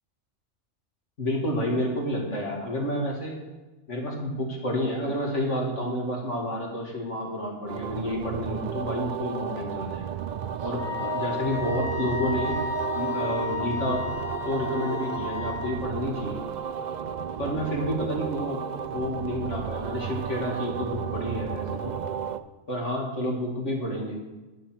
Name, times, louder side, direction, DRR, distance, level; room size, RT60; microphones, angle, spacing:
voice 1, 1.2-3.4 3.9-10.1 10.6-12.6 12.9-14.0 14.4-16.4 17.4-18.6 18.9-22.0 22.7-24.2, left 1 dB, 80° left, -1 dB, 2.6 m, -30 dB
sound 1, 7.7-22.4, right 8 dB, 60° right, 0.5 m, -33 dB
Wind instrument woodwind instrument, 10.8-15.7, left 7 dB, 20° left, 1.3 m, -33 dB
10.5 x 6.9 x 6.0 m, 1.2 s
omnidirectional pair, 1.2 m